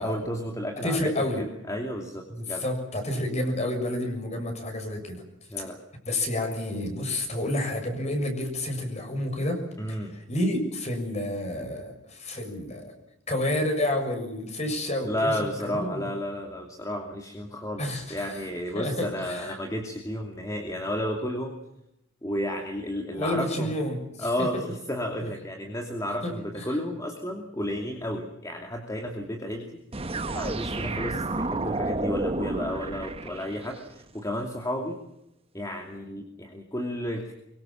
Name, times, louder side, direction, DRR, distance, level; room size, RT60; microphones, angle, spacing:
voice 1, 0.0-2.7 5.5-5.8 9.8-10.1 15.0-17.8 18.1-21.6 22.2-23.7 24.2-29.7 29.9-35.0 35.5-37.3, equal, 15° left, 2 dB, 2.7 m, -32 dB
voice 2, 0.8-1.4 2.3-5.2 5.6-5.7 6.1-9.6 9.9-12.9 13.3-16.1 17.8-18.4 18.7-19.6 23.1-24.6 26.2-26.8, left 1 dB, 35° left, 5 dB, 6.8 m, -30 dB
sound 1, 29.9-33.9, right 2 dB, 30° right, 1.2 m, -31 dB
24.5 x 24.0 x 7.3 m, 0.84 s
head